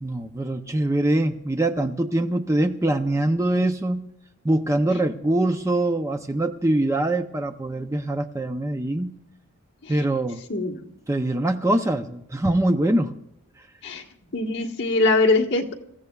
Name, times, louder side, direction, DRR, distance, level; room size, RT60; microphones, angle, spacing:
voice 1, 0.0-4.1 4.4-9.1 9.9-10.4 11.1-13.1, right 1 dB, 15° right, 6 dB, 0.5 m, -23 dB
voice 2, 10.5-10.9 13.8-14.0 14.3-15.7, left 3 dB, 50° left, 0 dB, 1.4 m, -22 dB
26.5 x 15.0 x 2.3 m, 0.78 s
head